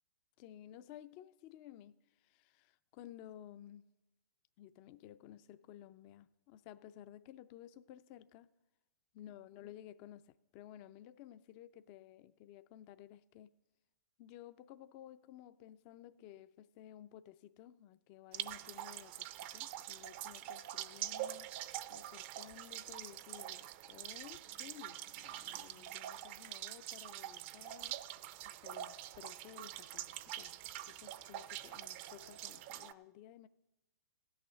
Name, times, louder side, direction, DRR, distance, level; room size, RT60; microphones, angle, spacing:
voice 1, 0.4-3.8 4.6-8.5 9.1-13.5 14.2-21.5 21.9-28.0 28.4-30.6 30.9-33.5, left 12 dB, 35° left, 0.4 m, -55 dB
sound 1, 18.3-32.9, right 13 dB, 40° right, 0.5 m, -45 dB
17.0 x 6.4 x 6.7 m
hypercardioid pair, 120°, 9 cm